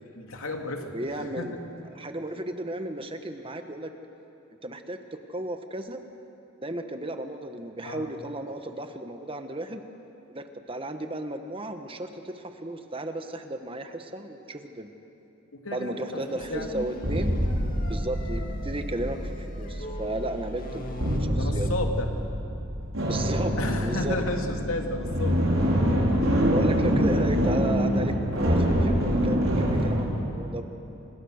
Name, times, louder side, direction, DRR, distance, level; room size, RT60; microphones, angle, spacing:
voice 1, 0.1-1.5 7.8-8.1 15.5-15.9 16.5-16.7 21.3-22.1 23.6-25.5, left 2 dB, 80° left, 3 dB, 2.8 m, -32 dB
voice 2, 0.9-1.5 1.9-3.9 4.6-6.0 6.6-9.8 10.3-14.9 15.7-17.3 17.9-21.7 23.0-24.2 26.5-30.6, right 1 dB, 25° right, 7 dB, 1.3 m, -34 dB
sound 1, 16.1-21.2, equal, 40° left, 2.2 m, -42 dB
sound 2, 16.4-30.0, equal, 75° right, 5.4 m, -26 dB
29.5 x 26.5 x 6.6 m, 2.9 s
head